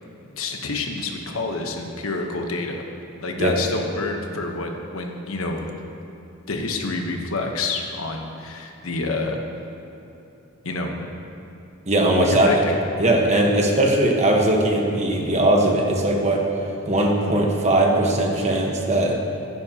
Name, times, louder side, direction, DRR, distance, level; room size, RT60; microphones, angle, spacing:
voice 1, 0.4-2.8 3.2-5.6 6.5-9.4 10.6-11.1 12.2-12.7, left 3 dB, 85° left, 3 dB, 1.1 m, -28 dB
voice 2, 11.9-12.5 13.0-16.4 16.9-19.2, right 1 dB, 35° right, 0 dB, 1.2 m, -19 dB
14.5 x 10.5 x 2.9 m, 2.9 s
head